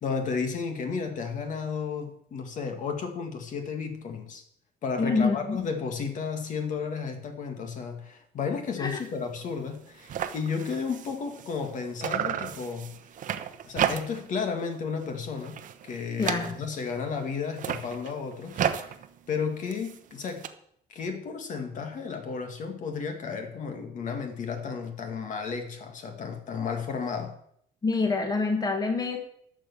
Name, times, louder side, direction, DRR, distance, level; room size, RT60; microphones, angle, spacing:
voice 1, 0.0-4.4 4.8-13.0 13.7-18.6 19.3-20.5 20.9-27.3, left 5 dB, 50° left, 5 dB, 2.0 m, -33 dB
voice 2, 5.0-5.6 8.8-9.0 16.2-16.6 27.8-29.2, left 4 dB, 25° left, 4 dB, 1.7 m, -26 dB
sound 1, 8.9-9.1 9.4-9.5 9.7-11.7 12.0-14.4 14.7-15.1 15.4-16.9 17.4-20.5, right 9 dB, 50° right, 1.0 m, -33 dB
12.0 x 6.6 x 7.0 m, 0.69 s
cardioid pair, 130°, 16 cm